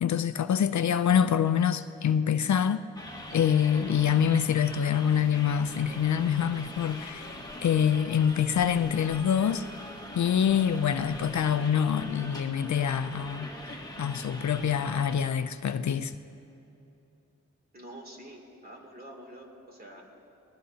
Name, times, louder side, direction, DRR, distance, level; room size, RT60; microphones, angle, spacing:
voice 1, 0.0-2.8 3.3-9.7 10.1-13.5 14.0-16.1, left 8 dB, 70° left, 0.5 m, -25 dB
sound 1, 3.0-15.2, left 1 dB, 15° left, 1.6 m, -42 dB
voice 2, 17.7-20.0, right 1 dB, 30° right, 2.7 m, -47 dB
21.0 x 19.0 x 2.8 m
wide cardioid pair, 75°, 29 cm